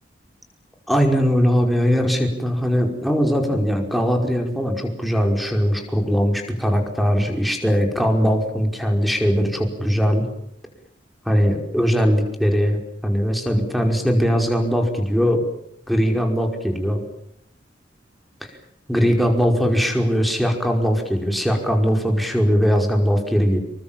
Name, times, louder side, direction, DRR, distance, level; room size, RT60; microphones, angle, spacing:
voice 1, 0.9-10.3 11.3-12.8 13.0-15.4 15.9-17.0 18.9-23.6, equal, ahead, 3 dB, 5.3 m, -20 dB
28.0 x 23.5 x 7.5 m, 0.77 s
head